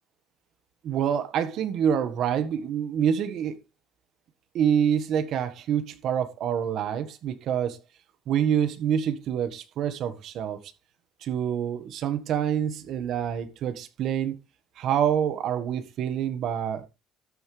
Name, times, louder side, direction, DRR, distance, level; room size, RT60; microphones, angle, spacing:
voice 1, 0.8-3.6 4.5-7.8 8.3-10.6 11.2-14.4 14.8-16.9, right 9 dB, 60° right, 1.5 m, -26 dB
13.0 x 9.0 x 3.3 m
cardioid pair, 135°, 0 cm